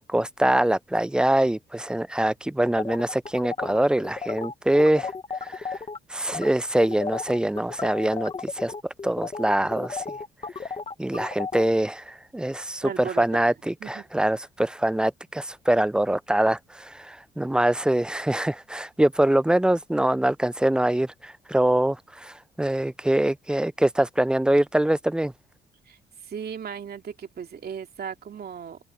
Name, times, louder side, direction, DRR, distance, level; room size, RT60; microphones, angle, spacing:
voice 1, 0.0-5.1 5.5-5.8 6.1-8.3 8.6-8.7 9.0-10.0 11.0-25.3, right 1 dB, 5° right, 0.3 m, -24 dB
sound 1, 2.8-6.0 6.3-6.5 6.8-11.6, left 4 dB, 25° left, 1.1 m, -34 dB
voice 2, 12.8-13.5 13.8-14.1 25.9-26.0 26.3-28.8, right 7 dB, 50° right, 2.6 m, -36 dB
open air
cardioid pair, 90°, 20 cm